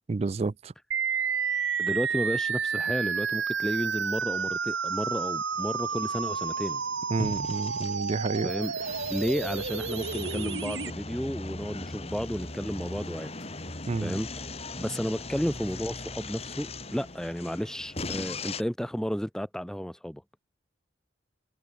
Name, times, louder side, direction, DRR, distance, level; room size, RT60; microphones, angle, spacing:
voice 1, 0.1-0.7 7.1-8.7 13.9-14.2, right 3 dB, 35° right, 0.4 m, -30 dB
sound 1, 0.9-10.9, right 6 dB, 80° right, 1.9 m, -30 dB
voice 2, 1.8-6.8 8.4-8.7 9.1-13.3 14.0-14.3 14.8-20.2, equal, 5° left, 0.7 m, -32 dB
sound 2, 5.5-18.6, left 2 dB, 35° left, 4.3 m, -39 dB
sound 3, 12.1-18.1, left 3 dB, 80° left, 7.1 m, -58 dB
head